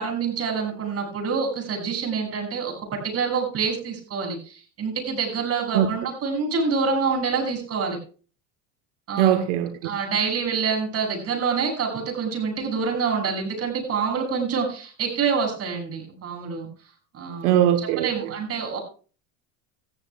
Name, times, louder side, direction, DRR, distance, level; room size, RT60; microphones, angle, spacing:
voice 1, 0.0-8.0 9.1-9.5 9.8-16.7 17.1-18.8, right 5 dB, 40° right, 2 dB, 6.9 m, -27 dB
voice 2, 9.2-9.8 17.4-18.3, right 11 dB, 85° right, 7 dB, 1.3 m, -21 dB
18.0 x 14.0 x 2.4 m, 0.38 s
supercardioid pair, 125°, 38 cm